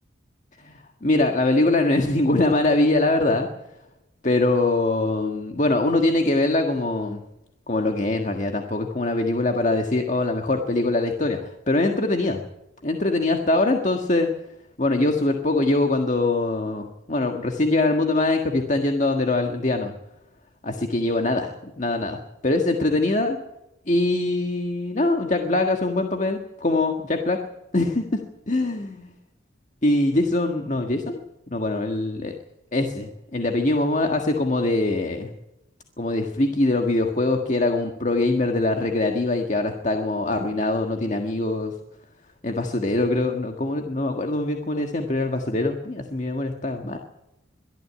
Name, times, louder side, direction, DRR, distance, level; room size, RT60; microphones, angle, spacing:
voice 1, 0.6-3.5 4.2-7.2 7.7-12.4 12.8-14.3 14.8-19.9 20.6-23.4 23.9-27.4 27.7-28.2 28.5-29.1 29.8-31.2 31.5-32.3 32.7-35.3 36.0-41.7 42.4-47.0, left 2 dB, 40° left, 4 dB, 1.7 m, -23 dB
23.0 x 13.0 x 8.8 m, 0.91 s
head